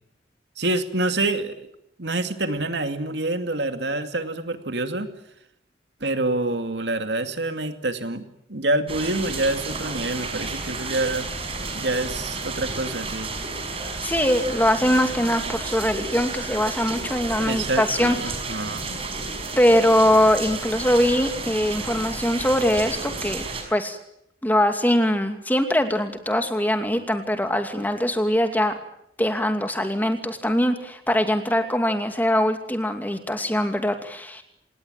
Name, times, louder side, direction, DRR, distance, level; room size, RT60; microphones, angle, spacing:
voice 1, 0.6-1.7 2.0-5.1 6.0-11.3 11.7-13.3 17.4-19.0, right 2 dB, 85° right, 8 dB, 2.4 m, -27 dB
sound 1, 8.9-23.6, right 3 dB, 35° right, 5.5 m, -32 dB
voice 2, 14.0-18.2 19.6-24.0 24.4-28.8 29.2-34.4, equal, 10° left, 6 dB, 2.5 m, -22 dB
27.5 x 19.5 x 9.1 m, 0.78 s
head